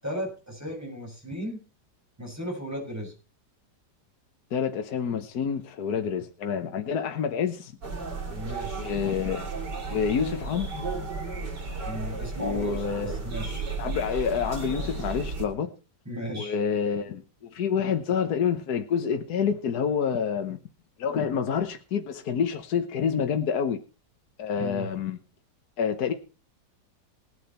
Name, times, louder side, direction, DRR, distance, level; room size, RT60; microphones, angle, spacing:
voice 1, 0.0-1.6 2.2-3.1 8.3-8.9 11.8-13.6 16.0-16.6 24.6-24.9, equal, 10° right, 6.8 m, -35 dB
voice 2, 4.5-7.7 8.7-9.5 9.9-10.8 12.4-13.2 13.8-15.7 16.3-20.6 21.0-23.8 24.4-25.2 25.8-26.1, left 7 dB, 65° left, 1.6 m, -28 dB
sound 1, 7.8-15.5, right 3 dB, 85° right, 4.1 m, -34 dB
19.0 x 9.3 x 4.4 m
omnidirectional pair, 1.8 m